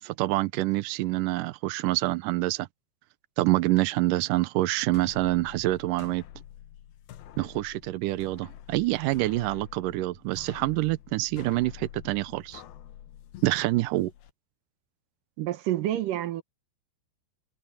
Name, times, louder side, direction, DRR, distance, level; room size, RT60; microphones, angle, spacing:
voice 1, 0.0-2.7 3.4-6.2 7.4-12.6 13.4-14.1, right 18 dB, 85° right, 1.9 m, -26 dB
sound 1, 4.8-14.3, left 11 dB, 70° left, 2.9 m, -47 dB
voice 2, 15.4-16.4, right 13 dB, 65° right, 2.5 m, -28 dB
omnidirectional pair, 4.7 m